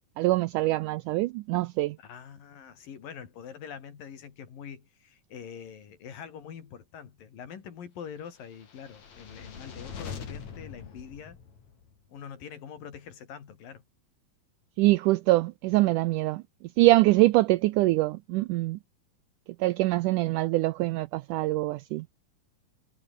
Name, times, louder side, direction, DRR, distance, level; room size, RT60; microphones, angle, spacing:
voice 1, 0.2-2.0 14.8-16.4 16.8-18.8 19.6-22.0, right 18 dB, 85° right, 1.8 m, -24 dB
voice 2, 2.0-11.4 12.1-13.8, left 7 dB, 70° left, 4.6 m, -44 dB
sound 1, 8.5-11.9, left 6 dB, 55° left, 4.4 m, -43 dB
omnidirectional pair, 4.2 m